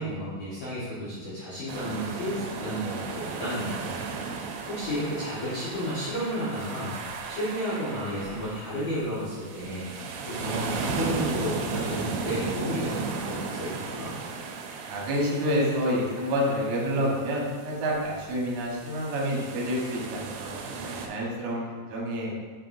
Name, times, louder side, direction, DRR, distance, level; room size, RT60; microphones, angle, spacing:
voice 1, 0.0-3.9 4.7-6.9 7.3-9.9 10.3-14.1, equal, 70° left, -11 dB, 1.6 m, -32 dB
sound 1, 1.7-21.1, right 4 dB, 80° right, 2.7 m, -36 dB
voice 2, 14.9-22.3, equal, 65° right, -4 dB, 2.1 m, -28 dB
6.7 x 5.7 x 2.6 m, 1.5 s
omnidirectional pair, 4.9 m